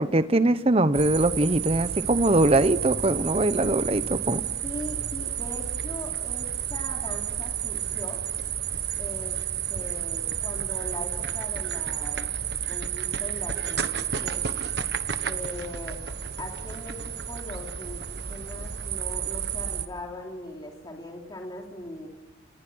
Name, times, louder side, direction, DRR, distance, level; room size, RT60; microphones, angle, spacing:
voice 1, 0.0-4.4, right 2 dB, 30° right, 13 dB, 0.9 m, -22 dB
sound 1, 0.9-19.9, right 8 dB, 55° right, 1.3 m, -31 dB
voice 2, 4.6-8.2 9.0-9.4 9.7-12.3 12.7-14.5 15.2-16.0 16.4-22.1, left 1 dB, 20° left, 0 dB, 3.3 m, -40 dB
29.5 x 29.5 x 6.3 m, 1.1 s
head